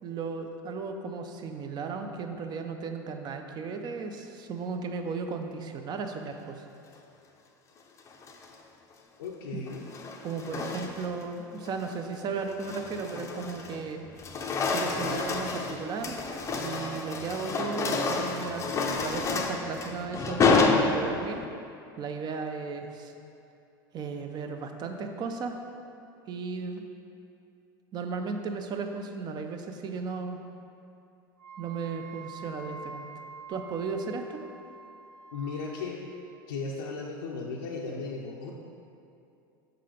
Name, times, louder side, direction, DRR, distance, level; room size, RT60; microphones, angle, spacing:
voice 1, 0.0-6.6 9.5-9.6 10.2-14.0 14.7-16.2 16.5-18.6 18.9-21.4 22.0-23.1 23.9-25.6 26.3-26.8 27.9-30.4 31.6-33.1 33.5-34.4, right 4 dB, 40° right, 5 dB, 0.6 m, -35 dB
sound 1, 8.1-8.6 9.7-11.2 11.7-11.9 12.4-13.8 14.1-21.4, left 4 dB, 25° left, 0.5 m, -29 dB
voice 2, 9.2-9.9 35.3-36.0 36.5-38.5, left 4 dB, 85° left, -3 dB, 0.6 m, -36 dB
Wind instrument woodwind instrument, 31.4-35.9, right 4 dB, 75° right, 1.2 m, -46 dB
5.7 x 3.8 x 4.9 m, 2.6 s
supercardioid pair, 105°, 12 cm